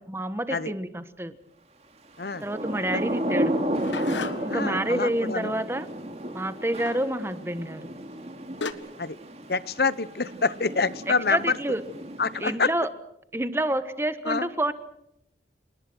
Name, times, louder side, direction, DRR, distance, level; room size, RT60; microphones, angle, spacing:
voice 1, 0.0-1.3 2.4-3.6 4.4-5.9 6.3-7.9 11.1-11.8 12.4-12.9 13.3-14.7, right 1 dB, 15° right, 11 dB, 1.3 m, -28 dB
Thunder / Rain, 2.2-12.8, equal, 35° right, 2.7 m, -33 dB
sound 1, 3.3-4.7 6.8-7.2 8.1-8.2 8.6-8.7, left 4 dB, 90° left, 1.6 m, -35 dB
voice 2, 4.5-5.5 9.0-9.1 9.5-11.6 12.2-12.7 14.3-14.5, left 4 dB, 55° left, 17 dB, 0.9 m, -26 dB
29.0 x 19.5 x 6.3 m, 0.79 s
head